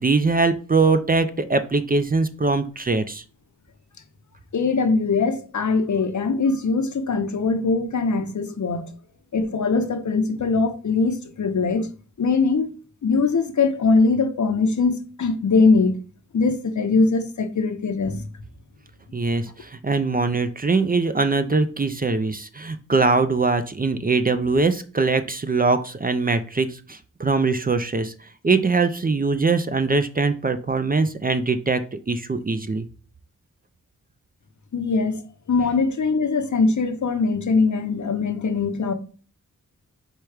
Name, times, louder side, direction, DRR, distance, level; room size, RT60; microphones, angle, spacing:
voice 1, 0.0-3.2 19.1-32.9, right 3 dB, 25° right, 0.5 m, -22 dB
voice 2, 4.5-8.9 9.3-11.9 12.2-16.0 16.3-18.2 34.7-35.2 35.5-38.9, left 4 dB, 60° left, 0.7 m, -21 dB
4.6 x 2.3 x 4.8 m
cardioid pair, 50°, 33 cm